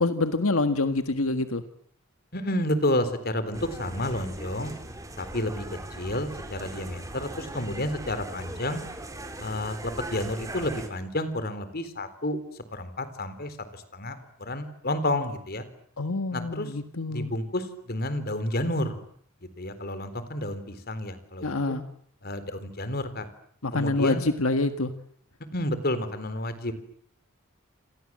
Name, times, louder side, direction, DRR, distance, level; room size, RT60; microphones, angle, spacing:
voice 1, 0.0-1.6 16.0-17.3 21.4-21.8 23.6-24.9, left 2 dB, 90° left, 9 dB, 1.6 m, -26 dB
voice 2, 2.3-4.7 5.2-5.6 6.0-8.8 9.4-12.4 12.7-15.6 16.3-16.7 17.1-19.0 19.6-21.8 22.2-23.3 23.7-24.3 25.5-26.7, left 1 dB, 50° left, 12 dB, 4.1 m, -30 dB
sound 1, 3.5-10.9, right 1 dB, 15° right, 4.0 m, -40 dB
29.0 x 27.0 x 7.6 m, 0.65 s
head